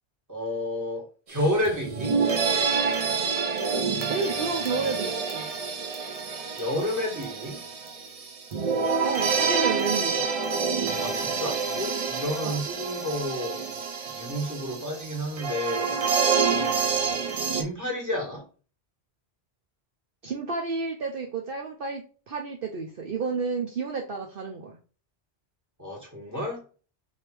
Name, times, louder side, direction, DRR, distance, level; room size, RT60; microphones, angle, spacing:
voice 1, 0.3-2.2 6.5-7.6 11.0-13.6 14.1-15.9 17.5-18.5 25.8-26.6, left 1 dB, 15° right, 1.7 m, -30 dB
sound 1, 1.4-1.5 1.7-17.6, right 5 dB, 40° right, 0.6 m, -27 dB
voice 2, 4.1-5.5 9.0-10.3 12.4-12.6 20.2-24.7, right 4 dB, 60° right, 0.9 m, -31 dB
3.4 x 2.8 x 4.5 m
omnidirectional pair, 1.1 m